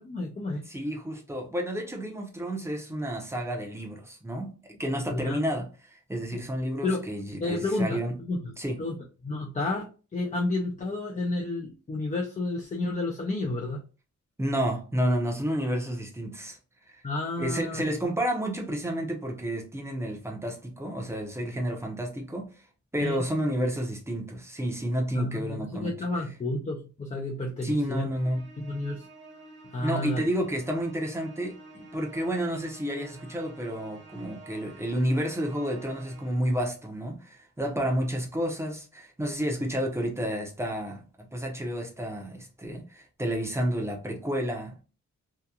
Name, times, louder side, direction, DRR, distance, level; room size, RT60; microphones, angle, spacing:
voice 1, 0.0-0.6 5.1-5.4 6.3-6.4 6.8-7.0 7.4-8.0 8.3-8.5 8.8-9.0 9.2-13.8 17.0-17.9 23.0-23.2 25.1-28.1 28.6-29.1 29.7-30.2, left 2 dB, 25° left, 0.5 m, -31 dB
voice 2, 0.7-8.1 8.6-8.8 14.4-16.6 16.9-17.0 17.4-22.5 22.9-25.9 27.6-28.4 29.8-41.0 41.3-44.7, equal, 10° right, 0.7 m, -30 dB
Musical instrument, 28.1-36.6, right 2 dB, 35° right, 0.9 m, -50 dB
2.8 x 2.3 x 2.3 m
wide cardioid pair, 130°, 30 cm